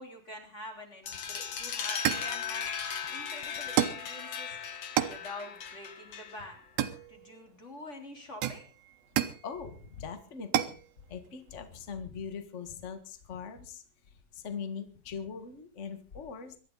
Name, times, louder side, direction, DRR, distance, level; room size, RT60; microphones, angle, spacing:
voice 1, 0.0-2.7 3.1-4.5 5.0-6.6 7.1-8.7, left 1 dB, 20° left, 4 dB, 3.3 m, -46 dB
sound 1, 1.1-6.6, left 7 dB, 50° left, 2.2 m, -37 dB
sound 2, 1.4-1.5 2.0-2.4 3.8-4.1 5.0-5.3 6.8-7.4 8.4-9.5 10.5-10.8, right 12 dB, 75° right, 2.8 m, -30 dB
voice 2, 9.4-10.8 11.1-13.8 14.3-16.6, left 6 dB, 80° left, 9 dB, 0.6 m, -41 dB
23.5 x 12.0 x 4.0 m, 0.35 s
omnidirectional pair, 4.3 m